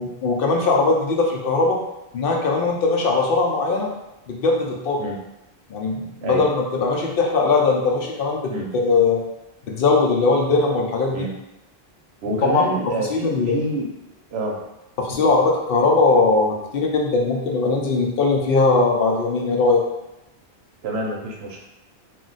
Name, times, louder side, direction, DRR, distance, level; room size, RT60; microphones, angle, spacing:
voice 1, 0.0-1.8 2.1-3.9 4.3-5.0 5.7-8.5 8.8-9.2 9.7-11.3 12.3-12.6 13.0-13.6 15.0-19.8, left 3 dB, 65° left, 0 dB, 0.7 m, -20 dB
voice 2, 12.2-13.9 14.3-14.6 15.1-15.3 20.8-21.6, right 2 dB, 80° right, -2 dB, 0.8 m, -27 dB
2.3 x 2.1 x 3.8 m, 0.92 s
omnidirectional pair, 1.1 m